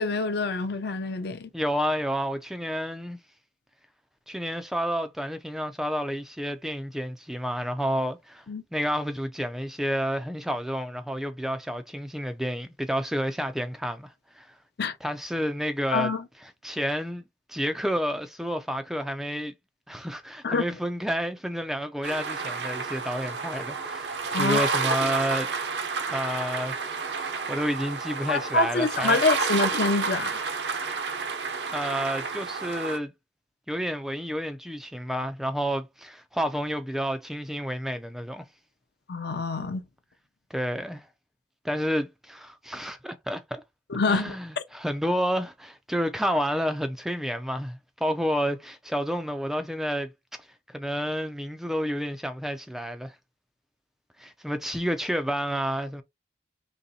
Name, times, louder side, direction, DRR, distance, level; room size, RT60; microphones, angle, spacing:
voice 1, 0.0-1.5 8.5-8.6 14.8-15.0 15.9-16.2 20.4-20.6 24.3-24.7 28.3-30.4 39.1-39.8 43.9-44.4, left 3 dB, 60° left, 0.6 m, -26 dB
voice 2, 1.5-3.2 4.3-8.5 8.7-14.5 15.0-16.1 16.6-17.2 17.5-19.5 19.9-25.5 26.1-26.8 27.1-29.2 31.7-33.1 33.7-38.4 40.5-41.1 41.6-43.6 44.1-50.1 50.7-53.2 54.2-56.0, equal, ahead, 0.3 m, -30 dB
sound 1, 22.0-33.0, right 4 dB, 65° right, 0.7 m, -30 dB
4.0 x 3.1 x 2.7 m
head